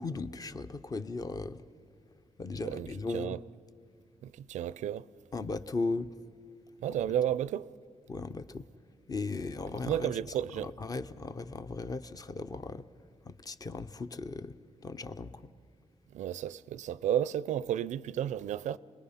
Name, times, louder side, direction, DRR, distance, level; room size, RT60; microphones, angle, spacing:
voice 1, 0.0-1.6 2.4-3.4 5.3-6.1 8.1-8.6 9.1-10.2 10.6-12.8 13.2-14.5 14.8-15.5, left 3 dB, 30° left, 0.7 m, -37 dB
voice 2, 4.2-5.1 6.8-7.7 9.8-10.7 16.1-18.8, right 10 dB, 85° right, 0.4 m, -32 dB
28.0 x 20.5 x 5.7 m
cardioid pair, 115°, 12 cm